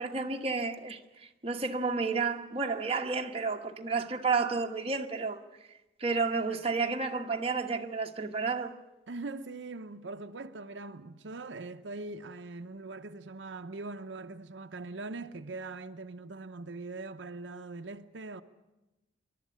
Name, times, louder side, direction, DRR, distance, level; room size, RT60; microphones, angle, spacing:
voice 1, 0.0-5.4 6.0-8.7, right 4 dB, 35° right, 1.2 m, -31 dB
voice 2, 9.1-18.4, right 3 dB, 85° right, 0.8 m, -41 dB
25.5 x 12.0 x 9.9 m
head